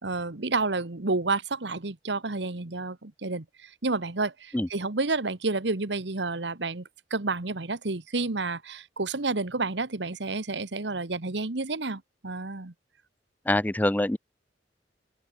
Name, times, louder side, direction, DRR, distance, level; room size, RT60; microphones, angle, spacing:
voice 1, 0.0-12.7, right 3 dB, 70° right, 1.4 m, -30 dB
voice 2, 13.5-14.2, left 1 dB, 10° left, 0.5 m, -24 dB
open air
head